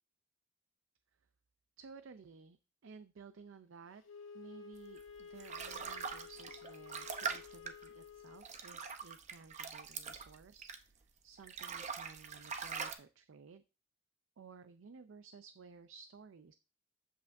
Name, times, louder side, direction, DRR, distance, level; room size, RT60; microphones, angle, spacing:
voice 1, 1.8-4.0 4.3-13.6 14.4-16.5, right 5 dB, 75° right, 10 dB, 0.5 m, -56 dB
Wind instrument woodwind instrument, 4.0-8.5, left 6 dB, 75° left, 1.5 m, -53 dB
sound 1, 5.0-11.0 11.4-12.9, right 6 dB, 35° right, 0.7 m, -43 dB
8.2 x 7.5 x 2.6 m, 0.32 s
head